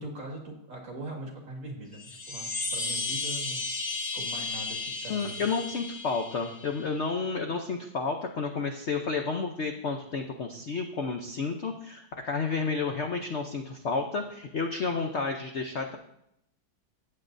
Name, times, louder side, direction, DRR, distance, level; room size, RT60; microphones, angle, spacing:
voice 1, 0.0-3.7 4.1-5.4 10.6-10.7, right 2 dB, 45° right, 1 dB, 2.3 m, -41 dB
sound 1, 1.9-7.0, left 3 dB, 40° left, 1.1 m, -34 dB
voice 2, 5.1-16.0, left 4 dB, 70° left, 4 dB, 0.6 m, -31 dB
14.5 x 8.6 x 2.6 m, 0.78 s
omnidirectional pair, 2.1 m